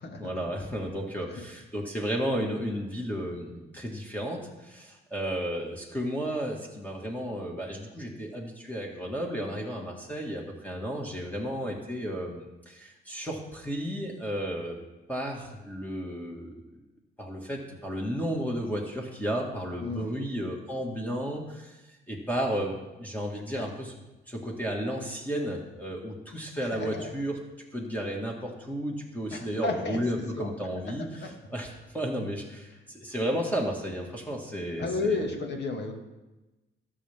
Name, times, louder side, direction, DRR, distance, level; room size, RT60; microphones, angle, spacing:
voice 1, 0.2-14.8 15.1-16.5 17.2-21.8 22.1-23.9 24.3-27.4 27.7-31.7 31.9-35.2, equal, 10° left, -1 dB, 2.1 m, -33 dB
voice 2, 26.6-27.1 29.3-30.0 30.4-30.5 30.9-31.3 34.8-35.9, left 3 dB, 60° left, 3 dB, 2.2 m, -32 dB
19.5 x 7.0 x 3.7 m, 1.1 s
cardioid pair, 90°, 20 cm